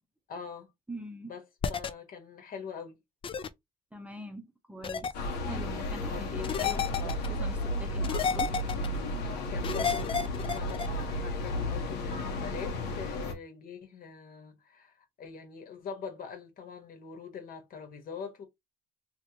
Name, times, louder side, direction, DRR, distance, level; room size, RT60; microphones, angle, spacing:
voice 1, 0.3-0.7 1.3-1.4 1.7-3.0 5.7-6.7 7.0-7.2 9.3-18.4, left 6 dB, 55° left, 1.3 m, -43 dB
voice 2, 0.9-1.3 3.9-5.1 5.4-8.5, right 1 dB, 5° right, 0.7 m, -43 dB
sound 1, 1.6-1.9 3.2-3.5 4.8-5.1 6.4-7.3 8.0-8.9 9.6-10.9, left 6 dB, 30° left, 0.4 m, -31 dB
sound 2, 5.1-13.3, left 1 dB, 85° left, 1.1 m, -33 dB
3.1 x 3.1 x 2.8 m
cardioid pair, 110°, 17 cm